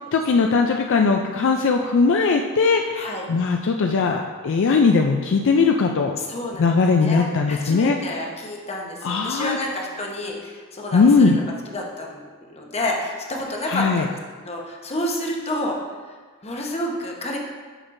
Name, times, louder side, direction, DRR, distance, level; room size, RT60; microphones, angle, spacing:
voice 1, 0.1-6.2 6.6-8.2 9.0-9.6 10.9-11.4 13.7-14.0, left 4 dB, 60° left, 3 dB, 0.4 m, -19 dB
voice 2, 2.9-3.2 6.2-11.4 11.7-12.2 12.5-15.8 16.1-16.2 16.4-17.4, left 1 dB, 30° left, 0 dB, 0.9 m, -29 dB
8.9 x 6.1 x 2.6 m, 1.5 s
head